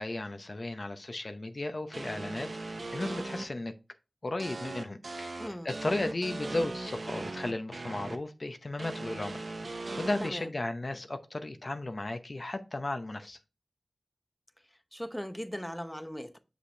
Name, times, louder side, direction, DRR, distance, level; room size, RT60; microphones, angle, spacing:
voice 1, 0.0-3.7 4.2-13.4, left 2 dB, 55° left, 0.7 m, -35 dB
sound 1, 1.9-3.4 4.4-8.2 8.8-10.3, right 2 dB, 75° right, 0.8 m, -39 dB
voice 2, 5.4-5.7 10.2-10.5 14.9-16.4, equal, 5° left, 0.7 m, -38 dB
6.6 x 5.1 x 3.3 m
cardioid pair, 45°, 0 cm